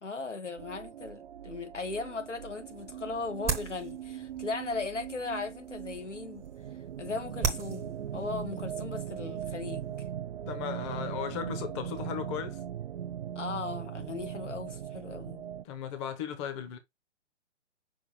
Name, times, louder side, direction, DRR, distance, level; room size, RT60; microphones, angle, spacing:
voice 1, 0.0-6.5 7.0-10.0 13.3-15.4, left 4 dB, 85° left, 1.8 m, -37 dB
sound 1, 0.6-15.6, right 10 dB, 60° right, 0.6 m, -40 dB
sound 2, 2.4-10.1, right 5 dB, 10° right, 0.7 m, -40 dB
voice 2, 10.5-12.6 15.6-16.8, left 8 dB, 25° left, 0.9 m, -36 dB
6.1 x 4.9 x 3.1 m
figure-of-eight pair, 135°, 35 cm